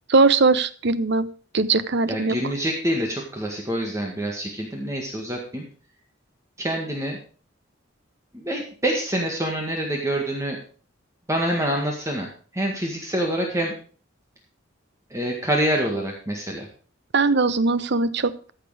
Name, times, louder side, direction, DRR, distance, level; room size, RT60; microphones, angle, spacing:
voice 1, 0.1-1.3 1.5-2.4 17.1-18.5, right 3 dB, 55° right, 14 dB, 0.8 m, -20 dB
voice 2, 2.1-5.6 6.6-7.2 8.3-10.6 11.3-13.7 15.1-16.7, right 1 dB, 15° right, 0 dB, 1.8 m, -26 dB
14.5 x 6.7 x 4.9 m, 0.40 s
head